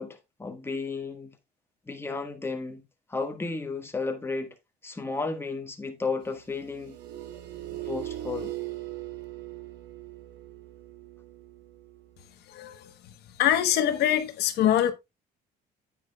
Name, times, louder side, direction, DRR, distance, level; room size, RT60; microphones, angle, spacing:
voice 1, 0.0-1.4 1.9-2.8 3.1-4.5 4.8-7.0 7.8-8.5, left 3 dB, 15° left, 1.4 m, -33 dB
sound 1, 6.2-12.2 13.8-14.2, right 14 dB, 85° right, 1.5 m, -40 dB
voice 2, 13.4-14.9, left 11 dB, 75° left, 1.1 m, -23 dB
9.3 x 8.7 x 2.3 m
cardioid pair, 110°, 17 cm